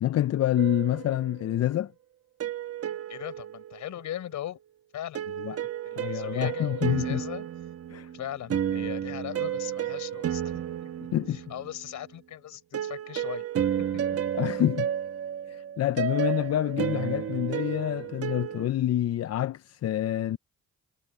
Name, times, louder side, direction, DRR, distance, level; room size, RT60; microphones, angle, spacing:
voice 1, 0.0-1.9 5.4-5.6 6.0-7.2 7.9-8.1 11.1-11.4 14.3-14.9 15.5-20.4, left 12 dB, 55° left, 0.6 m, -27 dB
sound 1, 0.6-1.6 2.4-4.2 5.1-11.9 12.7-18.7, right 9 dB, 50° right, 1.4 m, -32 dB
voice 2, 3.1-4.6 4.9-5.2 5.8-7.5 8.1-10.9 11.3-13.5, left 12 dB, 75° left, 5.7 m, -39 dB
cardioid pair, 90°, 30 cm